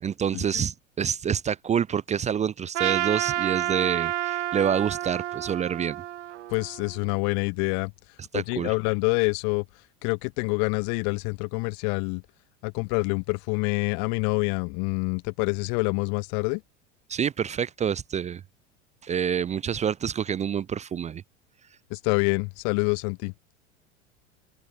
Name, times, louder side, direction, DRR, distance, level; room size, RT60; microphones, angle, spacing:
voice 1, 0.0-6.0 8.3-8.7 17.1-18.4 19.0-21.2, right 8 dB, 20° right, 0.5 m, -27 dB
Trumpet, 2.7-7.0, right 13 dB, 80° right, 0.6 m, -29 dB
voice 2, 6.5-7.9 8.3-9.6 10.0-12.2 12.6-16.6 21.9-23.3, left 40 dB or more, 50° left, 0.7 m, -26 dB
open air
figure-of-eight pair, 80°, 36 cm